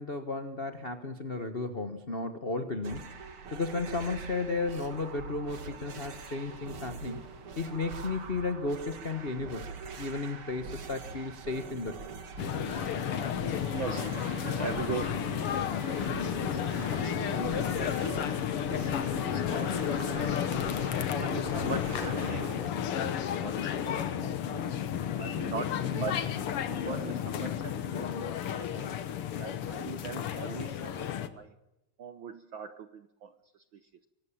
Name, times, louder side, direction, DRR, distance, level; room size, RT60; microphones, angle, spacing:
voice 1, 0.0-3.2 3.5-7.2 7.6-9.7 10.0-12.0, left 3 dB, 80° left, 7 dB, 0.5 m, -34 dB
sound 1, 2.8-22.5, right 4 dB, 50° right, 2.7 m, -43 dB
sound 2, 12.4-31.3, left 9 dB, 60° left, 1.8 m, -32 dB
voice 2, 13.7-15.2 16.4-20.0 21.0-24.7 25.2-26.2 26.7-29.0 29.4-31.5 32.0-33.9, right 6 dB, 70° right, 10 dB, 1.1 m, -41 dB
24.0 x 18.5 x 7.4 m, 0.88 s
omnidirectional pair, 3.4 m